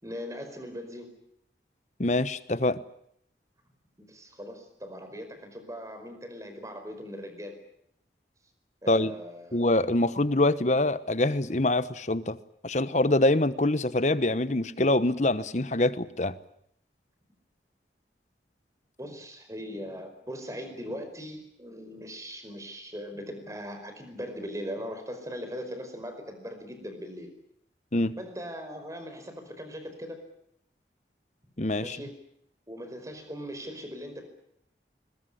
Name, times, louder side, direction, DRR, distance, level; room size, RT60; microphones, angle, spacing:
voice 1, 0.0-1.1 4.0-7.6 8.8-9.8 19.0-27.4 28.2-30.2 31.8-32.2 32.7-34.3, equal, 20° right, 7 dB, 5.0 m, -40 dB
voice 2, 2.0-2.8 8.9-9.1 9.5-12.4 12.6-16.3 27.9-28.1 31.6-32.0, left 2 dB, 40° left, 15 dB, 1.1 m, -25 dB
21.5 x 21.5 x 10.0 m, 0.72 s
head